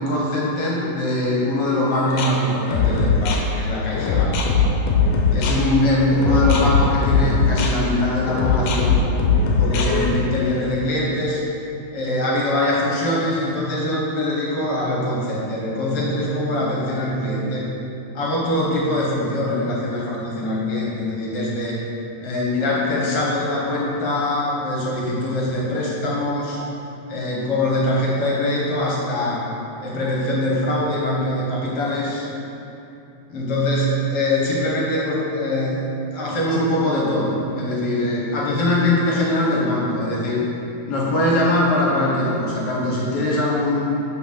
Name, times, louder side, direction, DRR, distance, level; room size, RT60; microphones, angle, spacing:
voice 1, 0.0-4.4 5.3-9.0 9.6-11.4 11.9-17.8 18.2-21.8 22.2-26.6 27.1-29.4 29.8-32.2 33.3-35.8 36.1-40.4 40.9-43.9, left 1 dB, 55° left, -5 dB, 2.2 m, -22 dB
sound 1, 1.9-10.1, left 5 dB, 85° left, 2.3 m, -20 dB
7.0 x 5.7 x 5.8 m, 2.9 s
omnidirectional pair, 3.4 m